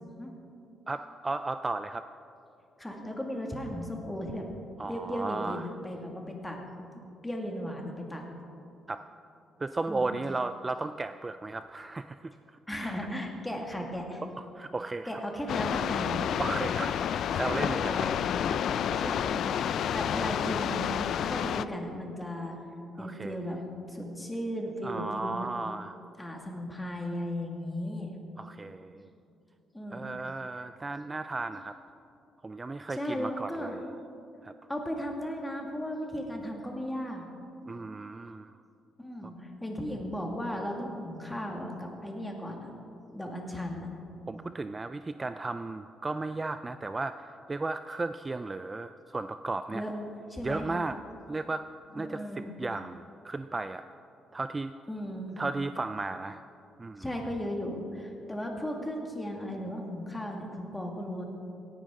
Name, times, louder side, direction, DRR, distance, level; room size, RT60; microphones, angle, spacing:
voice 1, 0.9-2.1 4.8-5.7 8.9-9.0 9.6-12.3 12.8-13.1 14.4-15.2 16.4-18.1 18.9-19.3 23.0-23.4 24.8-26.0 28.4-29.1 29.9-31.7 32.4-33.8 34.4-34.5 37.7-38.5 44.3-49.8 50.4-51.0 51.3-51.6 51.9-53.9 54.3-54.7 55.4-56.4 56.8-57.1, right 3 dB, 25° right, 10 dB, 0.3 m, -35 dB
voice 2, 2.8-4.5 4.9-6.9 7.2-8.2 9.9-10.1 12.7-14.2 15.1-16.4 17.9-18.3 19.0-19.5 19.9-22.6 23.0-23.6 23.9-25.5 26.2-28.1 29.7-30.1 33.0-33.8 34.7-37.2 39.0-42.7 43.1-44.0 49.7-50.0 50.3-50.7 52.0-52.5 54.9-55.4 57.0-61.2, equal, 10° left, 1 dB, 2.0 m, -36 dB
sound 1, 15.5-21.6, left 9 dB, 70° left, 0.3 m, -29 dB
17.0 x 10.5 x 3.7 m, 2.7 s
cardioid pair, 90°, 0 cm